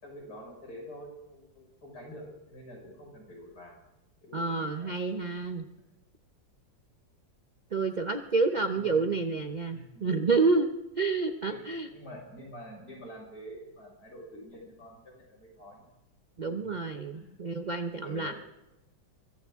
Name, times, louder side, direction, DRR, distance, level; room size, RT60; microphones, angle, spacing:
voice 1, 0.0-3.8 4.2-4.9 8.6-9.2 9.7-10.4 11.4-16.0 16.4-16.7 17.1-17.4 17.9-18.3, equal, 55° left, -1 dB, 6.1 m, -47 dB
voice 2, 4.3-5.6 7.7-10.7 11.0-11.9 16.4-18.3, right 4 dB, 50° right, 6 dB, 0.5 m, -29 dB
24.0 x 15.5 x 3.7 m, 0.96 s
omnidirectional pair, 2.1 m